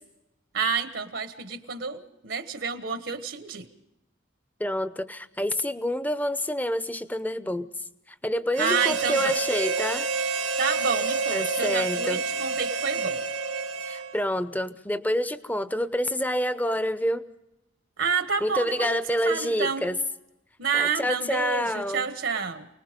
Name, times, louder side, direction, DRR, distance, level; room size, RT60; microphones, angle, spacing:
voice 1, 0.5-3.7 8.6-9.4 10.6-13.2 18.0-19.0 19.2-19.8 20.6-22.7, right 5 dB, 70° right, 9 dB, 1.3 m, -29 dB
voice 2, 4.6-7.7 8.1-10.1 11.3-12.2 13.8-17.2 18.4-20.0 20.7-22.1, equal, 10° left, 12 dB, 0.7 m, -28 dB
Harmonica, 8.5-14.3, right 4 dB, 90° right, 2.3 m, -28 dB
29.0 x 20.0 x 5.2 m, 0.92 s
head